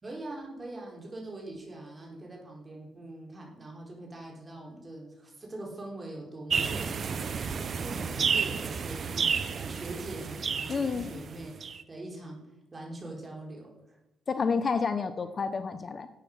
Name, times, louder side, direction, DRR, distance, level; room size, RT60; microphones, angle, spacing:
voice 1, 0.0-7.2 7.6-12.4 12.7-14.0, right 2 dB, 25° right, -1 dB, 4.4 m, -43 dB
sound 1, 6.5-11.8, right 6 dB, 50° right, 0.8 m, -31 dB
voice 2, 10.7-11.2 14.3-16.1, left 5 dB, 40° left, 11 dB, 0.8 m, -30 dB
12.0 x 8.4 x 5.5 m, 0.92 s
cardioid pair, 90°, 0 cm